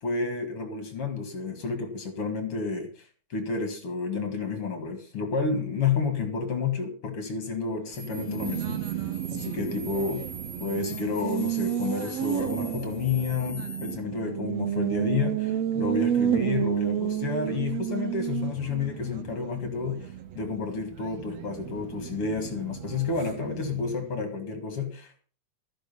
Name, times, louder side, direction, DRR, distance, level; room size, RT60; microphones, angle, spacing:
voice 1, 0.0-8.8 9.3-10.2 10.6-25.2, left 5 dB, 50° left, 7 dB, 2.7 m, -30 dB
sound 1, 7.9-13.9, equal, 35° left, 1.9 m, -43 dB
Race car auto racing, 7.9-24.1, right 10 dB, 65° right, 2.1 m, -31 dB
13.5 x 10.5 x 5.6 m, 0.40 s
omnidirectional pair, 3.3 m